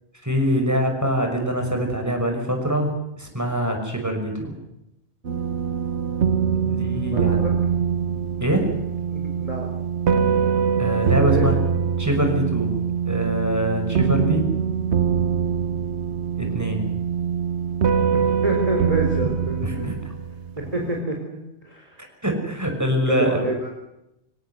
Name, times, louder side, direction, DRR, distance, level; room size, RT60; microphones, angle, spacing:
voice 1, 0.2-4.5 6.7-7.4 8.4-8.8 10.8-11.6 12.0-12.7 13.1-14.4 16.4-16.8 19.6-20.0 22.2-23.5, equal, 15° right, 3 dB, 5.7 m, -24 dB
sound 1, 5.2-20.7, right 7 dB, 85° right, 1.3 m, -23 dB
voice 2, 7.1-7.5 9.1-9.7 11.2-11.5 14.2-14.4 18.1-19.9 20.6-21.4 21.6-22.0 23.1-23.8, right 1 dB, 35° right, 1 dB, 4.1 m, -28 dB
25.5 x 17.5 x 7.9 m, 0.87 s
omnidirectional pair, 1.1 m